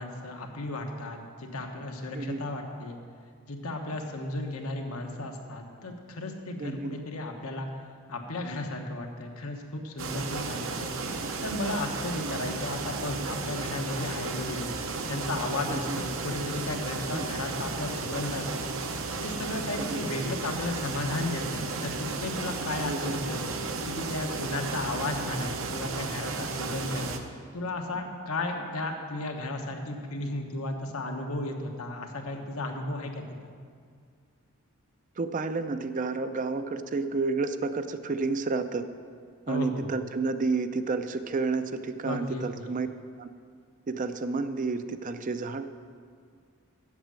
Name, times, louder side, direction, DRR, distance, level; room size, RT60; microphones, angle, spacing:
voice 1, 0.0-3.0 3.5-7.7 8.1-10.9 11.4-14.7 15.1-18.7 19.2-23.4 23.9-27.1 27.5-33.5 39.5-39.9 42.0-42.8, left 2 dB, 85° left, 3 dB, 1.2 m, -34 dB
voice 2, 6.6-7.0 12.2-12.4 15.7-16.0 17.1-17.3 19.8-20.0 22.8-23.2 35.2-38.8 39.5-42.9 43.2-43.3 43.9-45.6, right 3 dB, 35° right, 10 dB, 0.4 m, -30 dB
sound 1, 10.0-27.2, right 3 dB, 65° right, 0.8 m, -34 dB
8.1 x 7.2 x 7.4 m, 2.1 s
head